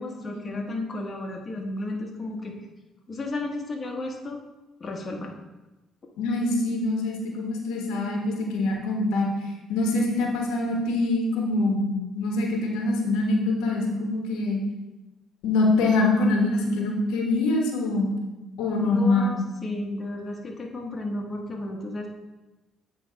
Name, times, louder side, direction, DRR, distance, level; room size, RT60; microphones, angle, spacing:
voice 1, 0.0-2.5 3.1-4.4 4.8-5.3 18.9-22.1, left 2 dB, 35° left, 0 dB, 1.2 m, -33 dB
voice 2, 6.2-9.3 9.7-14.6 15.4-18.1 18.6-19.4, left 2 dB, 90° left, 0 dB, 1.2 m, -24 dB
8.3 x 3.3 x 5.1 m, 1.1 s
cardioid pair, 80°, 0 cm